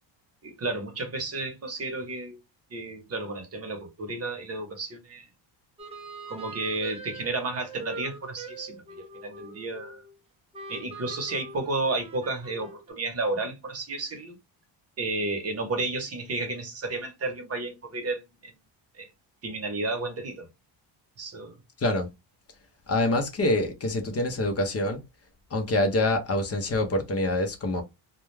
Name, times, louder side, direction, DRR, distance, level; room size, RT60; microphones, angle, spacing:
voice 1, 0.4-2.4 2.7-5.3 6.3-10.0 10.7-14.4 15.0-18.5 19.0-19.1 19.4-20.5 21.2-21.6, right 2 dB, 30° right, 0.9 m, -32 dB
sound 1, 5.8-10.2 10.5-12.9, right 3 dB, 15° right, 0.5 m, -43 dB
voice 2, 21.8-22.1 22.9-25.0 25.5-27.8, left 1 dB, 30° left, 0.6 m, -25 dB
2.3 x 2.2 x 3.1 m
cardioid pair, 125°, 48 cm